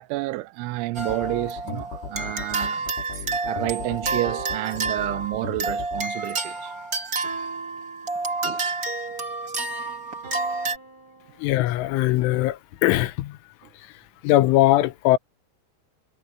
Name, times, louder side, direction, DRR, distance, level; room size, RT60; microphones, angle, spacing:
voice 1, 0.0-2.9 3.4-6.9 8.4-8.6 13.6-13.7, right 19 dB, 85° right, 3.1 m, -30 dB
sound 1, 0.9-10.8, right 3 dB, 45° right, 1.1 m, -29 dB
sound 2, 1.0-6.0, left 5 dB, 65° left, 6.4 m, -37 dB
sound 3, 1.9-3.6 4.2-5.7 7.2-8.7 10.2-11.7, right 5 dB, 20° right, 5.6 m, -45 dB
voice 2, 11.4-13.4 14.2-15.2, left 15 dB, 90° left, 3.5 m, -20 dB
omnidirectional pair, 5.4 m